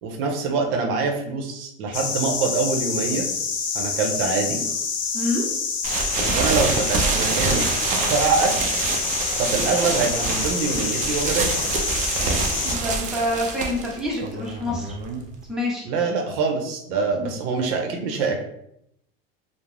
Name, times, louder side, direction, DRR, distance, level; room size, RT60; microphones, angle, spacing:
voice 1, 0.0-3.3 3.7-4.6 6.2-7.7 8.0-8.8 9.4-11.5 15.8-18.4, right 4 dB, 65° right, 2 dB, 0.6 m, -24 dB
sound 1, 1.9-12.8, left 5 dB, 40° left, 0.5 m, -27 dB
voice 2, 5.1-5.5 12.6-14.9 15.5-15.8 17.2-17.3, left 1 dB, ahead, -5 dB, 0.8 m, -27 dB
sound 2, 5.8-15.4, right 4 dB, 25° right, 0.4 m, -26 dB
2.4 x 2.0 x 3.2 m, 0.77 s
supercardioid pair, 115°, 30 cm